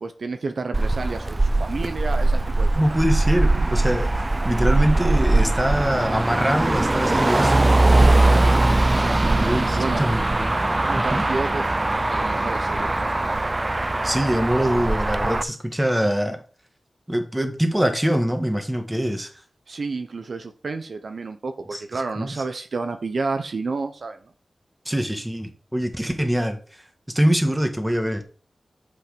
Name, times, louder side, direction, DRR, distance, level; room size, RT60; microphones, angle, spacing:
voice 1, 0.0-2.7 7.2-7.3 8.0-8.2 9.2-10.0 10.8-11.6 12.0-13.3 19.7-24.2, right 3 dB, 70° right, 7 dB, 0.8 m, -30 dB
Motor vehicle (road), 0.7-15.4, right 2 dB, 25° right, 0.4 m, -21 dB
voice 2, 2.8-7.6 8.9-10.6 11.0-11.2 14.0-16.4 17.1-19.3 21.7-22.4 24.9-26.8 27.1-28.2, equal, 10° right, 5 dB, 1.7 m, -24 dB
7.9 x 5.7 x 5.1 m, 0.40 s
wide cardioid pair, 100°, 0 cm